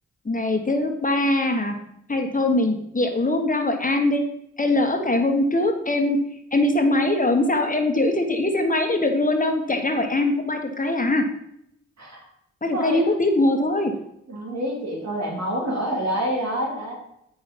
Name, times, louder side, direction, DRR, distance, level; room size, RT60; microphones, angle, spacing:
voice 1, 0.2-1.8 2.1-4.2 4.6-6.2 6.5-11.3 12.6-13.9, left 2 dB, 25° left, 4 dB, 1.5 m, -22 dB
voice 2, 12.7-13.2 14.3-16.9, right 1 dB, 60° right, -1 dB, 3.0 m, -27 dB
7.8 x 6.2 x 5.3 m, 0.77 s
supercardioid pair, 45°, 30 cm